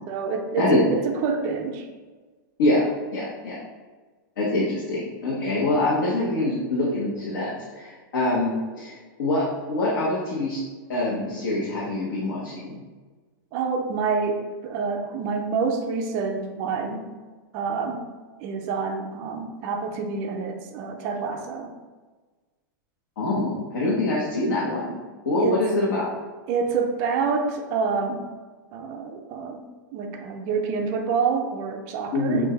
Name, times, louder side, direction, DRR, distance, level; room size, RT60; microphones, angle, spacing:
voice 1, 0.1-1.9 13.5-17.1 17.5-18.0 18.4-21.7 25.4-25.6 26.5-28.3 28.7-32.5, right 5 dB, 25° right, 3 dB, 0.4 m, -27 dB
voice 2, 3.1-3.6 4.4-10.6 10.9-12.8 23.2-25.0 25.2-26.1 32.1-32.5, left 2 dB, 65° left, -7 dB, 1.2 m, -24 dB
6.1 x 2.6 x 3.3 m, 1.3 s
supercardioid pair, 180°, 11 cm